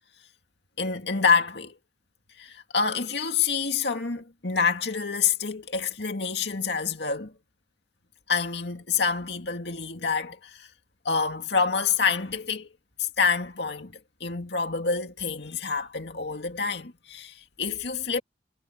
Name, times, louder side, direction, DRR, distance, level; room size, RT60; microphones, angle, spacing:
voice 1, 0.8-1.7 2.4-7.3 8.3-10.7 11.0-12.7 13.0-13.9 14.2-18.2, left 5 dB, 65° left, 2.3 m, -27 dB
head